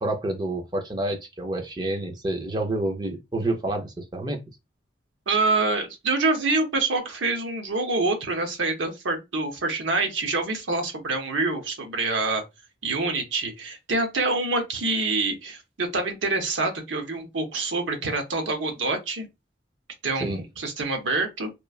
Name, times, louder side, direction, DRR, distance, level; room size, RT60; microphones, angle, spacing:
voice 1, 0.0-4.4 20.2-20.4, right 1 dB, 25° right, 0.5 m, -28 dB
voice 2, 5.3-12.4 12.8-19.3 20.0-21.5, right 3 dB, 90° right, 0.8 m, -26 dB
3.0 x 2.2 x 2.3 m
head